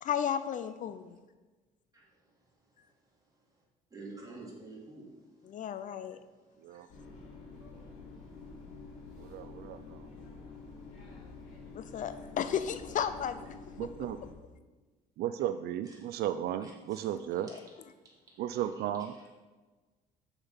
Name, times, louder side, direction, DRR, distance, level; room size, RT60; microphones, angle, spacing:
voice 1, 0.0-1.2 5.4-6.2 11.7-13.6 17.1-17.5, left 8 dB, 50° left, 12 dB, 0.5 m, -34 dB
voice 2, 3.9-5.1 6.7-6.8 16.6-17.0 17.5-17.6, right 3 dB, 20° right, -5 dB, 3.4 m, -47 dB
sound 1, 6.9-14.3, left 4 dB, 90° left, 2.8 m, -48 dB
voice 3, 9.2-10.1 13.8-14.2 15.2-17.5 18.4-19.1, right 11 dB, 70° right, 10 dB, 0.4 m, -35 dB
7.3 x 6.9 x 5.6 m, 1.3 s
cardioid pair, 110°, 17 cm